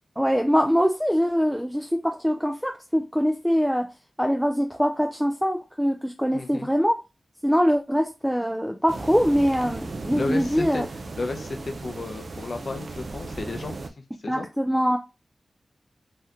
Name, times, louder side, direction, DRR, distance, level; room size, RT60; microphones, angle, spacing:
voice 1, 0.2-3.9 4.2-7.0 7.4-10.9 14.3-15.0, equal, ahead, 0.4 m, -23 dB
voice 2, 6.3-6.7 10.2-10.8 11.2-13.8 14.2-14.5, left 3 dB, 65° left, 0.6 m, -32 dB
sound 1, 8.9-13.9, right 3 dB, 70° right, 0.4 m, -36 dB
2.7 x 2.2 x 3.6 m
cardioid pair, 45°, 0 cm